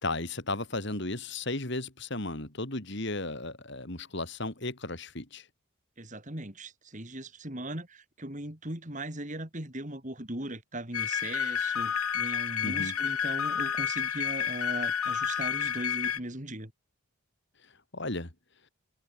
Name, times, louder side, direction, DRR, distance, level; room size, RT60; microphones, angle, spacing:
voice 1, 0.0-5.5 12.6-12.9 17.9-18.3, left 2 dB, 50° left, 3.2 m, -34 dB
voice 2, 6.0-16.7, right 1 dB, 35° right, 3.7 m, -39 dB
sound 1, 10.9-16.2, left 8 dB, 90° left, 1.3 m, -30 dB
head